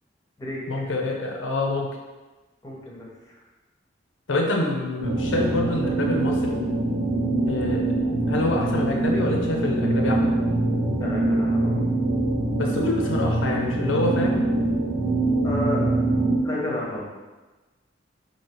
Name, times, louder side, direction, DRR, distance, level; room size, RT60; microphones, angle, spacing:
voice 1, 0.7-1.9 4.3-6.6 7.5-7.9 8.3-10.3 12.6-14.4, left 2 dB, 75° left, 0 dB, 0.6 m, -26 dB
voice 2, 2.6-3.4 11.0-11.8 15.4-16.0 16.4-17.0, left 1 dB, 20° left, -4 dB, 0.8 m, -32 dB
sound 1, 5.0-16.4, right 2 dB, 75° right, 0.7 m, -24 dB
3.2 x 2.8 x 4.4 m, 1.2 s
head